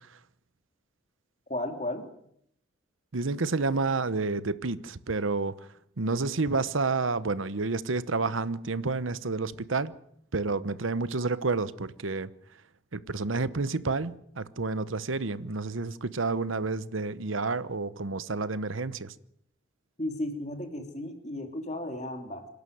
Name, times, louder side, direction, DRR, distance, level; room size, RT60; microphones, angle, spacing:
voice 1, 1.5-2.1 20.0-22.5, left 1 dB, 35° left, 2.9 m, -34 dB
voice 2, 3.1-5.6 6.0-9.9 10.3-12.3 12.9-19.1, right 3 dB, 85° right, 1.0 m, -29 dB
26.0 x 11.5 x 9.4 m
head